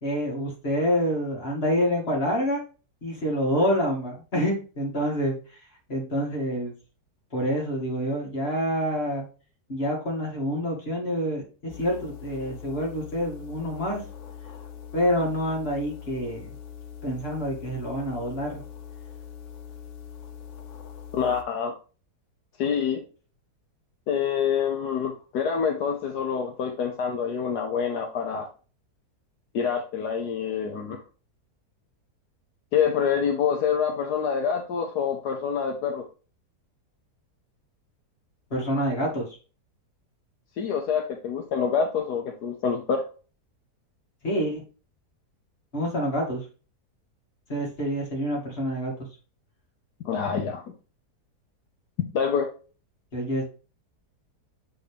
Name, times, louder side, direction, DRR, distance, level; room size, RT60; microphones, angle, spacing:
voice 1, 0.0-2.6 3.0-5.4 5.9-6.7 7.3-9.3 9.7-14.0 14.9-16.5 17.0-18.6 38.5-39.3 44.2-44.6 45.7-46.4 47.5-49.1 53.1-53.4, equal, 35° left, -1 dB, 2.2 m, -27 dB
sound 1, 11.7-21.4, left 8 dB, 60° left, 0.9 m, -42 dB
voice 2, 21.1-21.7 22.6-23.0 24.1-28.5 29.5-31.0 32.7-36.0 40.6-43.0 50.0-50.6 52.1-52.5, left 7 dB, 75° left, 3 dB, 1.4 m, -26 dB
7.1 x 4.1 x 3.3 m, 0.36 s
omnidirectional pair, 1.8 m